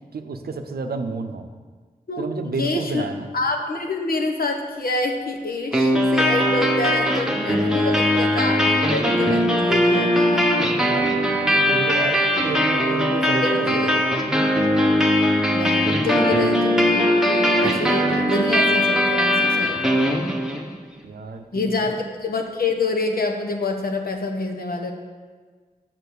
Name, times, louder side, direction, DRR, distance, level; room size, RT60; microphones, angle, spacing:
voice 1, 0.1-1.5 2.2-3.3 10.8-12.2 12.4-14.1 21.0-21.8, right 3 dB, 85° right, 6 dB, 0.6 m, -30 dB
voice 2, 2.1-3.1 3.3-10.5 13.4-14.0 15.5-20.2 21.5-21.9 22.2-24.9, left 3 dB, 70° left, 3 dB, 1.1 m, -27 dB
sound 1, 5.7-20.7, equal, 5° right, 1.2 m, -20 dB
6.8 x 5.9 x 6.6 m, 1.5 s
cardioid pair, 55°, 16 cm